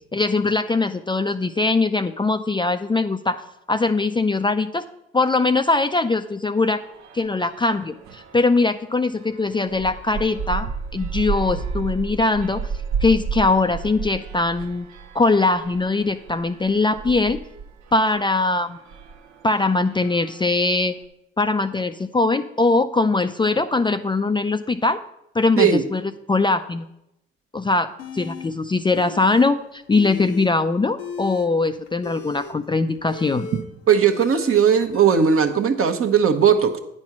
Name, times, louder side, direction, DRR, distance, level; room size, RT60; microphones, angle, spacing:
voice 1, 0.1-3.4 3.7-4.9 5.1-6.8 7.1-12.6 13.0-14.9 15.1-17.4 17.9-18.8 19.4-20.9 21.4-25.0 25.3-26.0 26.3-26.9 27.5-33.5, left 3 dB, 15° left, 9 dB, 0.4 m, -21 dB
sound 1, 6.8-8.7 9.2-20.7, right 5 dB, 70° right, 0.8 m, -33 dB
sound 2, 28.0-28.5 28.9-29.5 29.7-30.5 30.9-35.5, left 6 dB, 80° left, 0.9 m, -36 dB
voice 2, 33.9-36.8, right 7 dB, 50° right, 7 dB, 1.1 m, -17 dB
9.6 x 4.3 x 6.0 m, 0.83 s
hypercardioid pair, 50°, 29 cm